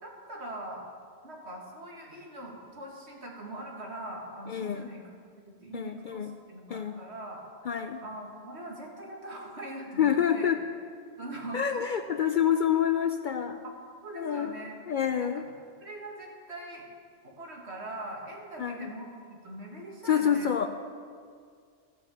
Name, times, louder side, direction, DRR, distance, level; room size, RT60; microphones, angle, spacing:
voice 1, 0.0-0.8 1.2-5.1 5.6-7.4 8.0-10.5 11.2-11.7 13.6-13.7 14.0-14.8 15.2-16.9 17.2-20.7, right 1 dB, 70° right, -1 dB, 2.3 m, -42 dB
voice 2, 4.5-4.9 5.7-6.3 6.7-7.0 7.6-8.0 10.0-10.6 11.5-13.6 14.2-14.6 14.9-15.5 18.6-18.9 20.0-20.7, left 9 dB, 60° left, 7 dB, 0.6 m, -27 dB
13.0 x 6.7 x 7.1 m, 2.1 s
omnidirectional pair, 1.2 m